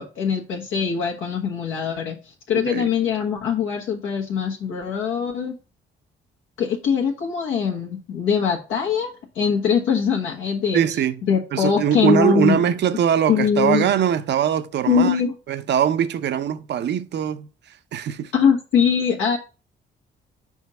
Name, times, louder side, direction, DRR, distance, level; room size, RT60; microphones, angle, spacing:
voice 1, 0.0-2.2 2.5-5.5 6.6-10.8 11.3-12.6 13.3-13.8 14.9-15.3 18.3-19.4, left 7 dB, 90° left, 1.4 m, -22 dB
voice 2, 10.7-11.2 11.5-15.2 15.5-17.5 17.9-18.3, right 9 dB, 60° right, 0.6 m, -21 dB
5.0 x 3.6 x 5.5 m
cardioid pair, 90°, 20 cm